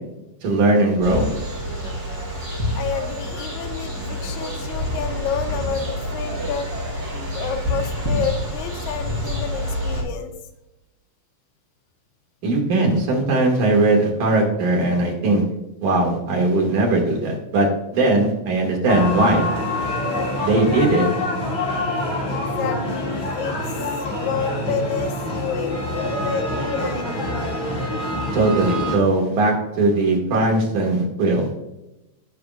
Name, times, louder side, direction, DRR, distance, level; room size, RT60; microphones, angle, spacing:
voice 1, 0.4-1.3 12.4-15.4 15.8-17.7 17.9-19.5 20.4-21.1 28.3-31.5, right 2 dB, 75° right, 0 dB, 3.5 m, -19 dB
sound 1, 1.0-10.0, equal, 25° right, 3.8 m, -27 dB
voice 2, 2.8-6.7 7.3-10.3 22.2-23.6 24.1-27.5, left 7 dB, 80° left, 7 dB, 2.0 m, -29 dB
sound 2, 18.9-29.0, left 1 dB, 20° left, 2.9 m, -26 dB
17.0 x 5.8 x 2.5 m, 0.94 s
omnidirectional pair, 3.5 m